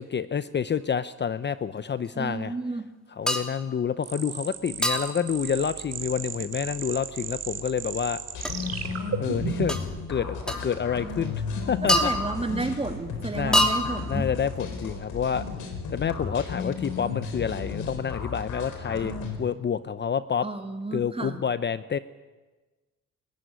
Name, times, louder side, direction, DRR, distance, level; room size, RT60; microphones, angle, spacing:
voice 1, 0.0-2.5 3.2-8.2 9.2-9.8 10.1-11.4 11.7-12.1 13.3-13.6 14.1-15.4 15.9-20.5 20.9-22.0, left 7 dB, 35° left, 13 dB, 0.8 m, -28 dB
voice 2, 2.1-2.8 11.8-14.3 20.4-21.4, right 3 dB, 20° right, 6 dB, 2.6 m, -31 dB
sound 1, 3.3-3.6 4.8-5.2 8.4-8.5 9.7-9.8 10.5-10.6 11.9-12.6 13.5-14.2, equal, 5° left, 3.0 m, -25 dB
sound 2, 4.0-9.9, right 7 dB, 55° right, 3.1 m, -34 dB
sound 3, 8.3-19.4, left 5 dB, 85° left, 4.4 m, -34 dB
28.0 x 14.5 x 9.6 m, 1.2 s
cardioid pair, 90°, 30 cm